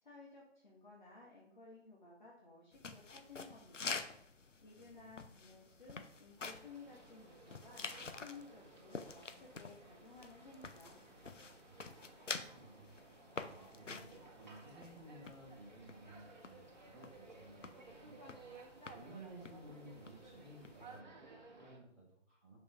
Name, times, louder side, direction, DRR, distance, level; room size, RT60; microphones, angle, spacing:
voice 1, 0.0-4.0 4.6-11.0, left 3 dB, 40° left, -4 dB, 1.8 m, -57 dB
sound 1, 2.7-21.0, left 4 dB, 80° left, 1.0 m, -49 dB
voice 2, 4.7-5.2 11.7-12.0 12.3-22.6, right 1 dB, 10° left, -11 dB, 3.3 m, -57 dB
sound 2, 6.4-21.8, right 3 dB, 40° right, 1.9 m, -58 dB
12.0 x 5.5 x 3.7 m, 0.73 s
figure-of-eight pair, 170°, 36 cm